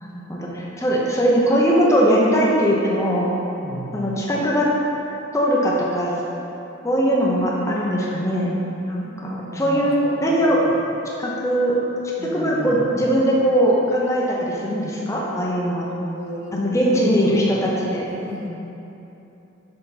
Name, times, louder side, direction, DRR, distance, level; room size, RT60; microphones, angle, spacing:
voice 1, 0.0-3.3 3.9-4.7 5.3-6.1 6.8-8.5 8.8-10.6 11.2-11.7 12.3-15.9 16.5-18.0, equal, 15° left, -4 dB, 0.7 m, -20 dB
voice 2, 3.6-4.0 9.0-10.7 12.2-13.0 15.9-16.5 16.9-17.4 18.0-18.5, right 1 dB, 55° right, -2 dB, 0.8 m, -34 dB
6.7 x 4.1 x 4.1 m, 3.0 s
head